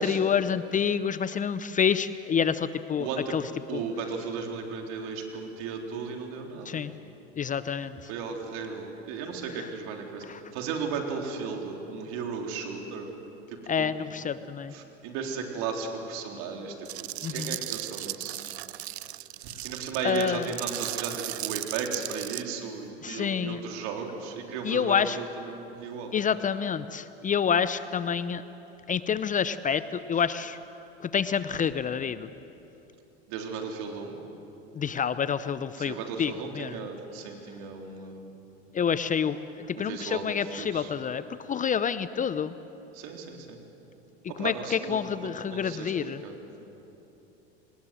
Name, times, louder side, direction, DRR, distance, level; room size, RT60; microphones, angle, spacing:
voice 1, 0.0-3.4 3.7-3.8 6.7-6.9 7.4-8.0 10.3-10.4 13.7-14.7 17.2-17.6 20.0-20.5 23.0-23.6 24.6-25.2 26.1-28.4 28.9-30.6 31.0-32.3 34.8-36.7 38.7-42.5 44.4-46.2, left 7 dB, 25° left, 14 dB, 0.7 m, -28 dB
voice 2, 3.0-3.4 3.7-6.8 8.1-10.2 10.5-13.1 13.5-13.9 14.7-18.4 19.4-26.1 33.3-34.2 35.8-38.3 39.7-40.9 42.9-43.6 44.3-46.4, right 5 dB, 60° right, 2 dB, 3.9 m, -35 dB
sound 1, 16.9-22.4, right 15 dB, 80° right, 0.6 m, -36 dB
26.0 x 20.0 x 7.7 m, 3.0 s
hypercardioid pair, 85°, 32 cm